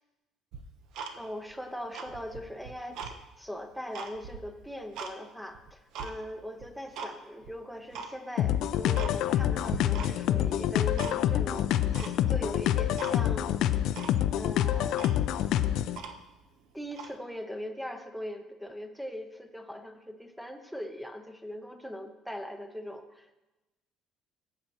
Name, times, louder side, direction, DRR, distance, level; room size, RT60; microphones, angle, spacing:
Tick-tock, 0.5-1.5 1.8-3.2 3.6-5.1 5.5-6.1 6.6-7.1 7.4-7.5 7.9-8.1 8.5-8.6 8.9-9.4 9.7-10.4 10.6-11.4 11.9-12.5 13.0-13.2 13.5-13.6 13.9-14.2 14.6-14.7 14.9-16.4 16.9-17.1, right 5 dB, 65° right, 0.8 m, -41 dB
voice 1, 1.2-13.8 14.4-15.1 16.7-23.3, equal, ahead, 7 dB, 0.6 m, -40 dB
sound 1, 8.4-16.0, left 11 dB, 60° left, 0.3 m, -27 dB
15.0 x 7.4 x 2.9 m, 1.0 s
cardioid pair, 165°, 0 cm